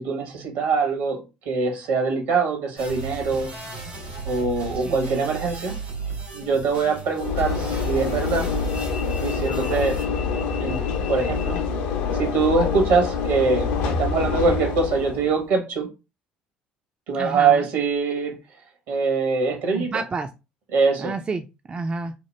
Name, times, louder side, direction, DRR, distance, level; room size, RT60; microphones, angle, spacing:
voice 1, 0.0-3.5 4.2-5.8 6.3-8.5 9.2-10.0 10.6-10.8 11.1-11.6 12.2-15.9 17.1-18.3 18.9-20.0 20.7-21.1, right 4 dB, 70° right, 1.1 m, -23 dB
sound 1, 2.8-10.0, right 4 dB, 90° right, 1.4 m, -35 dB
Train / Engine / Alarm, 7.2-15.4, left 5 dB, 70° left, 0.5 m, -26 dB
voice 2, 17.1-17.6 19.7-20.3 21.0-22.1, right 4 dB, 25° right, 0.3 m, -30 dB
2.9 x 2.1 x 3.2 m
hypercardioid pair, 55°, 4 cm